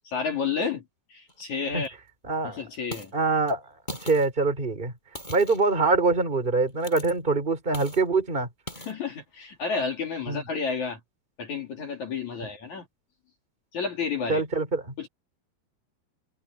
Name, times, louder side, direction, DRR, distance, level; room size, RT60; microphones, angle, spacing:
voice 1, 0.0-0.8 1.1-1.9 2.4-3.1 8.9-11.0 11.4-12.9 13.7-14.5 15.0-15.1, left 5 dB, 50° left, 4.0 m, -31 dB
sound 1, 1.3-1.4 1.8-1.9 2.7-3.1 3.5-3.6 3.9-4.3 5.2-5.8 6.7-7.1 7.7-8.0 8.7-8.9, left 1 dB, 10° left, 8.0 m, -40 dB
voice 2, 2.2-2.6 3.1-3.6 4.0-4.9 5.3-8.5 10.3-10.4 14.3-14.9, right 3 dB, 10° right, 4.2 m, -24 dB
omnidirectional pair, 4.6 m